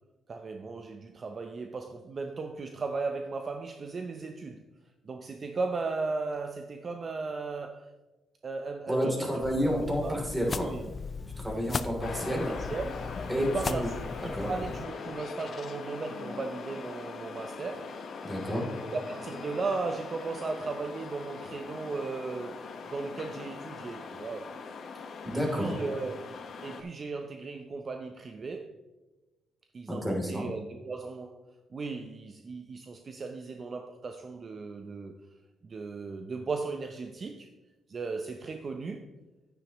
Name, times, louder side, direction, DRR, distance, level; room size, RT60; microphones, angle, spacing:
voice 1, 0.3-4.6 5.0-7.9 8.4-9.4 9.6-9.7 10.0-10.2 10.6-10.9 12.1-18.0 18.8-24.5 24.9-28.7 29.7-31.4 31.7-35.1 35.6-37.5 37.9-39.1, right 4 dB, 40° right, 0.7 m, -36 dB
voice 2, 8.9-10.7 11.4-12.5 13.3-13.9 14.2-14.5 18.2-18.7 25.2-25.7 29.9-30.4, equal, 10° right, 3.2 m, -30 dB
sound 1, 9.4-14.8, left 4 dB, 35° left, 0.5 m, -38 dB
sound 2, 12.0-26.8, left 5 dB, 55° left, 1.3 m, -41 dB
10.5 x 9.4 x 3.1 m
cardioid pair, 90°, 0 cm